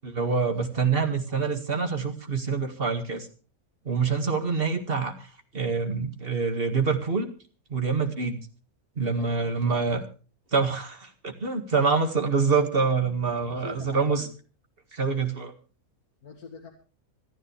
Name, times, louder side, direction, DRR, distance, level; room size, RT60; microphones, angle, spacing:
voice 1, 0.0-3.3 3.9-5.3 5.5-7.3 7.7-8.4 9.0-10.0 10.5-14.3 14.9-15.5, right 5 dB, 40° right, 5 dB, 2.1 m, -26 dB
voice 2, 9.2-9.8 13.5-14.3 16.2-16.7, left 5 dB, 80° left, 1 dB, 2.3 m, -44 dB
26.0 x 10.0 x 3.3 m, 0.37 s
omnidirectional pair, 1.5 m